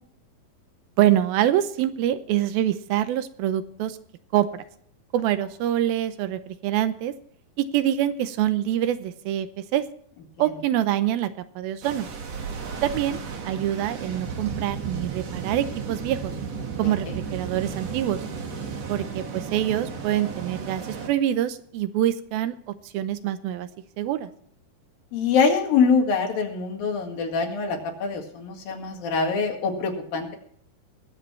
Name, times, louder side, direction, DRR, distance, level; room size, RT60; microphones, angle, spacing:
voice 1, 1.0-4.0 4.3-4.6 5.1-7.1 7.6-9.9 10.4-11.3 11.6-12.1 12.8-16.3 16.8-18.2 18.9-23.7 24.0-24.3, right 12 dB, 85° right, 12 dB, 2.6 m, -25 dB
sound 1, 11.8-21.1, right 5 dB, 50° right, 2.5 m, -34 dB
voice 2, 16.8-17.2 25.1-30.4, left 5 dB, 70° left, 3 dB, 3.7 m, -24 dB
21.0 x 7.9 x 4.5 m, 0.63 s
omnidirectional pair, 4.2 m